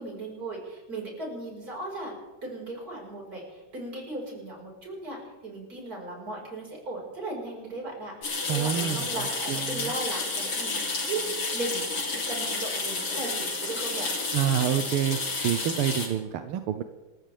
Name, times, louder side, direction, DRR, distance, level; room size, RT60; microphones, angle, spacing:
voice 1, 0.0-2.1 2.4-14.1, right 2 dB, 40° right, -1 dB, 5.6 m, -37 dB
sound 1, 8.2-16.1, left 3 dB, 80° left, 4.3 m, -31 dB
voice 2, 8.5-9.1 9.5-9.9 14.3-15.2 15.4-16.8, right 10 dB, 85° right, 9 dB, 1.6 m, -27 dB
27.5 x 14.5 x 3.4 m, 1.2 s
omnidirectional pair, 2.4 m